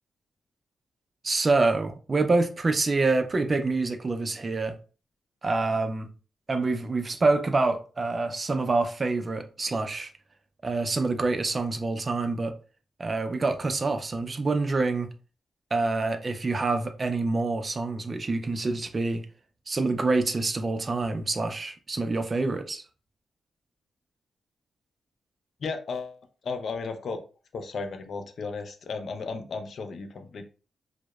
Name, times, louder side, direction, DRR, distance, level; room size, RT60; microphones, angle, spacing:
voice 1, 1.2-4.7 5.4-6.1 6.5-10.1 10.6-12.5 13.0-15.1 15.7-19.2 19.7-22.8, right 3 dB, 30° right, 0.3 m, -26 dB
voice 2, 25.6-26.2 26.4-27.2 27.5-30.5, left 4 dB, 60° left, 0.4 m, -34 dB
2.8 x 2.0 x 2.2 m
cardioid pair, 100°, 0 cm